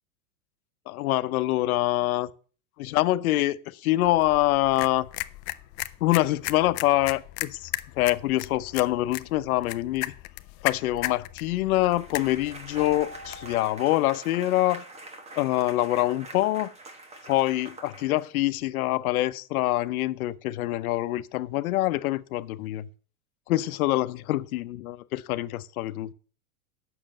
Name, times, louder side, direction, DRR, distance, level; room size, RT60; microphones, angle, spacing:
voice 1, 0.9-2.3 2.8-5.1 6.0-7.7 8.0-10.1 10.6-14.8 15.4-16.7 17.3-22.9 23.5-26.1, left 16 dB, 90° left, 0.8 m, -25 dB
sound 1, 4.0-13.6, left 18 dB, 40° left, 0.5 m, -37 dB
sound 2, 11.8-18.5, right 2 dB, 15° right, 1.2 m, -45 dB
Keyboard (musical), 12.8-15.4, equal, 80° right, 3.9 m, -46 dB
9.0 x 6.5 x 6.4 m
supercardioid pair, 150°, 42 cm